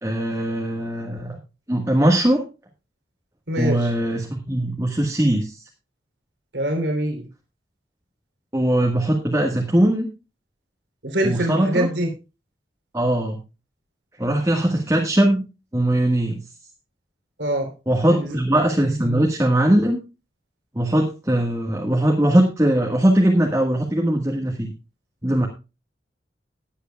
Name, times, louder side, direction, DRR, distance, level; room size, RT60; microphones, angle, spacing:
voice 1, 0.0-1.4 1.7-2.4 3.6-5.6 8.5-10.1 11.2-11.9 12.9-13.4 14.2-15.4 15.7-16.4 17.9-20.0 20.7-24.7 25.2-25.5, right 1 dB, 15° right, 0 dB, 1.5 m, -20 dB
voice 2, 3.5-3.9 6.5-7.2 11.0-12.1 17.4-17.7 18.1-18.4, right 1 dB, 80° right, 3 dB, 3.3 m, -24 dB
19.0 x 8.2 x 2.3 m, 0.28 s
head